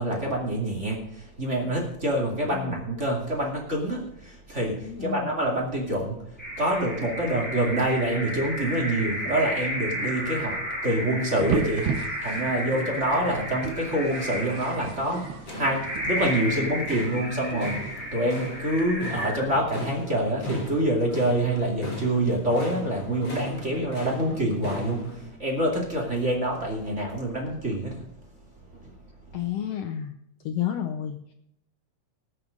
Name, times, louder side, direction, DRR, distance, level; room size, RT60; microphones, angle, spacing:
voice 1, 0.0-28.0 28.8-28.9, right 1 dB, 25° right, -1 dB, 2.4 m, -26 dB
voice 2, 4.8-5.3 29.3-30.1 30.4-31.3, left 10 dB, 75° left, 6 dB, 1.6 m, -31 dB
sound 1, 6.4-19.9, equal, 5° left, 6.1 m, -33 dB
sound 2, 11.4-18.9, right 6 dB, 65° right, 1.3 m, -36 dB
sound 3, 15.1-25.3, equal, 50° left, 6.2 m, -38 dB
19.0 x 6.6 x 5.2 m, 0.77 s
omnidirectional pair, 3.4 m